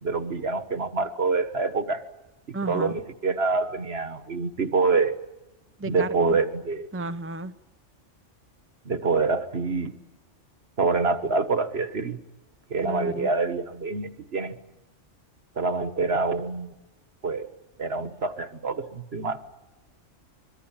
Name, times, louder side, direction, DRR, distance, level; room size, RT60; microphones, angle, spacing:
voice 1, 0.0-2.0 2.7-5.1 5.8-6.9 8.9-9.9 10.8-12.2 12.7-14.6 15.6-16.7 17.2-17.5 17.8-19.4, right 4 dB, 55° right, 10 dB, 1.8 m, -26 dB
voice 2, 2.5-3.0 5.8-6.4 6.9-7.5 12.8-13.3, right 2 dB, 10° right, 10 dB, 0.8 m, -33 dB
24.5 x 23.0 x 8.9 m, 1.0 s
omnidirectional pair, 1.3 m